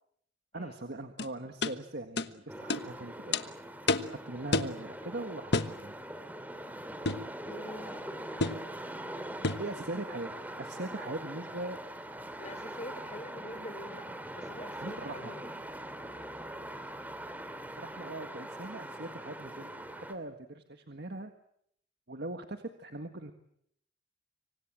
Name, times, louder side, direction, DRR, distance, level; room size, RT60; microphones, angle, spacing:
voice 1, 0.5-3.6 4.1-5.9 9.6-10.3 10.6-11.8 14.8-15.3 17.8-21.3 22.1-23.3, right 2 dB, 60° right, 6 dB, 1.7 m, -41 dB
sound 1, 1.2-1.3 1.6-1.8 2.2-2.3 2.7-2.8 3.3-3.4 3.9-4.1 4.5-4.8 5.5-5.8 7.0-7.3 8.4-8.6 9.4-9.7, left 3 dB, 60° left, 1.3 m, -29 dB
sound 2, 2.5-20.1, right 1 dB, 10° right, 2.5 m, -42 dB
voice 2, 7.5-8.0 12.4-15.5 16.4-17.1, left 1 dB, 35° left, 10 dB, 4.0 m, -46 dB
26.0 x 25.0 x 7.6 m, 0.71 s
head